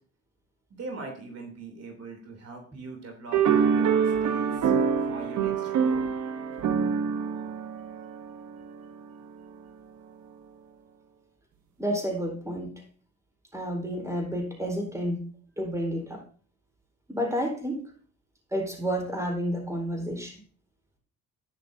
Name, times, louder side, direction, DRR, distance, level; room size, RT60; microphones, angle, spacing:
voice 1, 0.8-3.4 3.7-4.7 5.1-6.1, right 3 dB, 55° right, 3 dB, 3.2 m, -41 dB
sound 1, 3.3-8.9, right 6 dB, 70° right, 1.1 m, -25 dB
voice 2, 11.8-12.8 13.5-15.3 15.6-16.2 17.1-17.8 18.5-20.4, equal, 10° right, 2 dB, 4.2 m, -30 dB
11.5 x 10.5 x 2.7 m, 0.42 s
cardioid pair, 90°, 30 cm